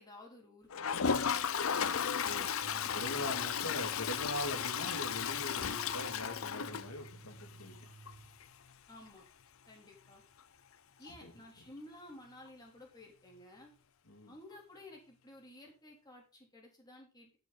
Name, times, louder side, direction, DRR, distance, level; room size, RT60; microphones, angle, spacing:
voice 1, 0.0-2.0 2.4-3.1 8.9-9.2 9.7-10.2 11.0-13.7 14.3-17.4, left 1 dB, 20° left, 0 dB, 3.2 m, -54 dB
Toilet flush, 0.7-7.4 7.8-7.9 8.1-8.2 8.4-8.5 11.1-11.2 12.5-12.6, left 7 dB, 65° left, 0.6 m, -34 dB
sound 1, 2.6-8.7, right 3 dB, 65° right, 3.1 m, -54 dB
voice 2, 2.9-7.8 11.2-11.3 14.1-14.3, left 1 dB, 85° left, 4 dB, 2.5 m, -41 dB
13.5 x 7.1 x 4.0 m, 0.32 s
head